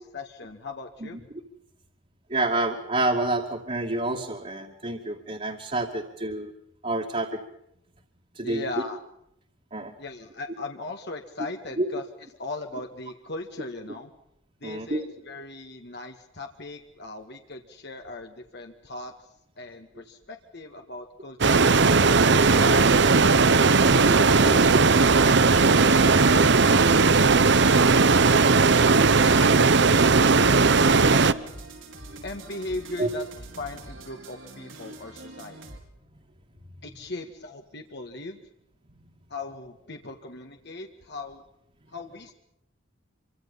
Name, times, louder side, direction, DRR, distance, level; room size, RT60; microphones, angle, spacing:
voice 1, 0.1-1.2 8.4-9.0 10.0-12.1 12.4-14.1 14.6-19.1 19.6-21.6 22.0-22.3 22.6-23.1 24.0-26.7 27.4-30.0 30.5-31.5 32.2-33.3 33.6-35.6 36.8-38.4 39.3-41.4 41.9-42.3, left 2 dB, 60° left, 4 dB, 2.0 m, -39 dB
voice 2, 2.3-6.5 6.8-7.3 8.4-8.6 9.7-9.9 11.8-11.9 14.6-15.0 33.0-33.1, right 2 dB, 35° right, -1 dB, 2.6 m, -28 dB
sound 1, 21.4-31.3, right 4 dB, 60° right, 1.0 m, -18 dB
sound 2, 26.7-35.8, right 2 dB, 80° right, 5.3 m, -44 dB
27.0 x 25.5 x 5.6 m, 0.78 s
head